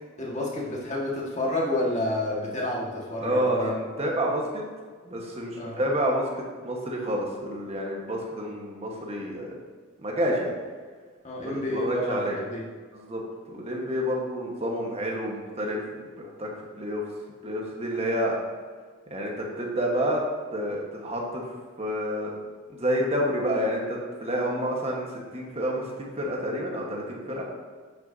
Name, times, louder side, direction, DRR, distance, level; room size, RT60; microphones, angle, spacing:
voice 1, 0.2-3.7 5.5-5.8 11.2-12.6, left 1 dB, 35° left, -4 dB, 1.8 m, -29 dB
voice 2, 3.2-4.6 5.0-9.5 10.0-10.5 11.5-12.4 12.9-13.2 13.5-16.5 16.8-17.1 17.4-18.4 19.1-20.2 20.5-21.4 21.8-22.3 22.7-27.4, equal, 30° right, -1 dB, 1.4 m, -29 dB
10.0 x 6.4 x 2.8 m, 1.5 s
head